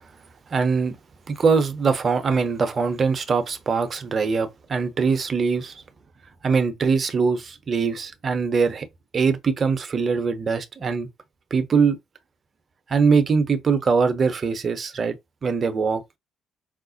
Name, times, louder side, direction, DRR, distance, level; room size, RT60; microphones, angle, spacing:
voice 1, 0.5-1.0 1.3-5.7 6.4-8.9 9.1-11.1 11.5-12.0 12.9-15.2 15.4-16.0, right 5 dB, 40° right, 0.6 m, -22 dB
4.9 x 2.1 x 2.7 m
figure-of-eight pair, 45°, 0 cm